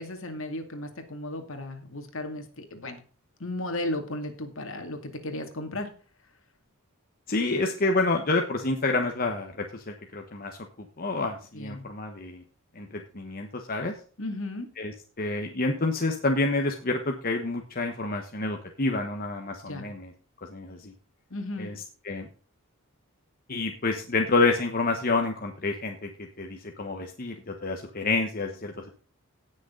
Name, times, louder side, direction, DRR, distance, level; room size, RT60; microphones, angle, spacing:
voice 1, 0.0-3.0 3.4-5.9 11.5-11.8 14.2-14.7 19.6-19.9 21.3-21.7, left 1 dB, 60° left, 6 dB, 2.4 m, -35 dB
voice 2, 7.3-10.6 11.0-12.4 12.7-13.9 14.8-14.9 15.2-20.1 20.5-20.9 21.6-21.7 22.0-22.3 23.5-28.9, left 3 dB, 40° left, 4 dB, 1.2 m, -28 dB
17.5 x 6.6 x 3.9 m, 0.40 s
head